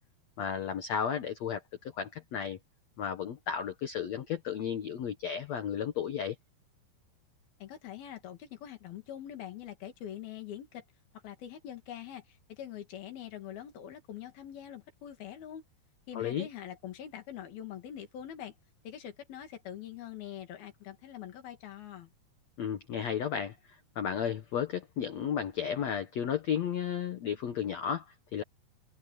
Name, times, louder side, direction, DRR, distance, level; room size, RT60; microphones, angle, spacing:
voice 1, 0.4-2.6 3.0-6.3 16.1-16.5 22.6-28.4, left 8 dB, 80° left, 1.5 m, -33 dB
voice 2, 7.6-10.9 11.2-15.6 16.1-18.6 18.8-22.1, left 10 dB, 65° left, 3.8 m, -44 dB
omnidirectional pair, 5.0 m